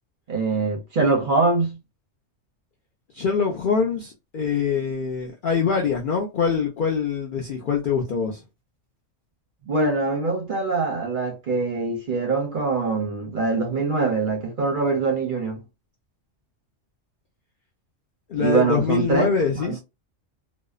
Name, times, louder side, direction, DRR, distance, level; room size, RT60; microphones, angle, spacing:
voice 1, 0.3-1.8 9.7-15.6 18.3-19.3 19.6-19.8, right 3 dB, 55° right, 0.6 m, -23 dB
voice 2, 3.1-8.4 18.3-19.8, left 6 dB, 65° left, 0.5 m, -24 dB
2.6 x 2.0 x 2.3 m
omnidirectional pair, 1.3 m